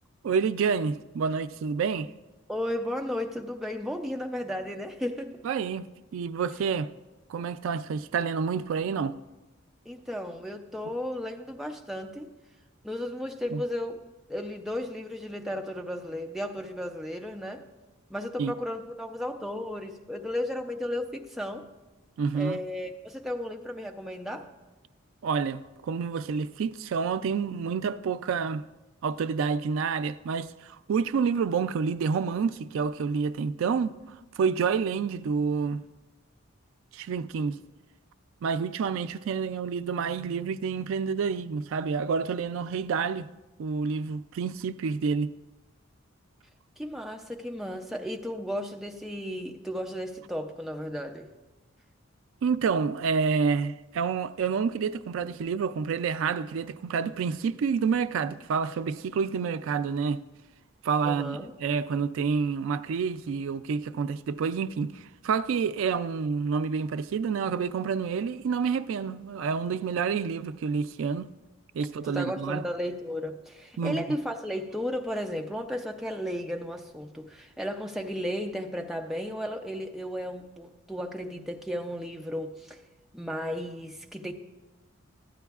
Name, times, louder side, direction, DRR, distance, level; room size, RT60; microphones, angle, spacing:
voice 1, 0.2-2.1 5.4-5.9 6.1-6.9 7.3-9.1 13.5-13.6 18.4-18.5 22.2-22.6 25.2-28.7 29.0-33.9 34.3-35.8 36.9-37.6 38.4-43.3 43.6-45.3 52.4-60.2 60.8-71.3 71.7-72.6 73.8-74.0, right 5 dB, 70° right, 0.3 m, -28 dB
voice 2, 2.5-5.4 9.9-12.3 12.8-14.0 14.3-17.6 18.1-21.7 22.3-24.5 46.8-51.3 61.0-61.5 72.0-82.8 83.1-84.3, equal, ahead, 0.4 m, -34 dB
12.5 x 9.1 x 2.4 m
head